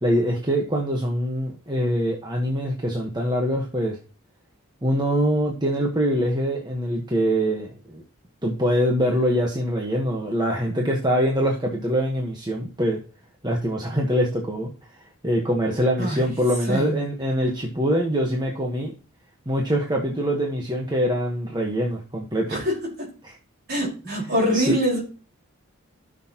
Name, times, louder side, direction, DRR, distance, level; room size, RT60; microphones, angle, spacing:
voice 1, 0.0-4.0 4.8-8.0 8.4-13.0 13.4-14.7 15.2-18.9 19.5-22.6 23.2-23.3 24.5-24.8, equal, 20° right, 1.2 m, -24 dB
voice 2, 16.7-17.0 22.5-23.1 23.7-25.0, equal, 45° right, 4.7 m, -24 dB
13.5 x 6.4 x 2.9 m
head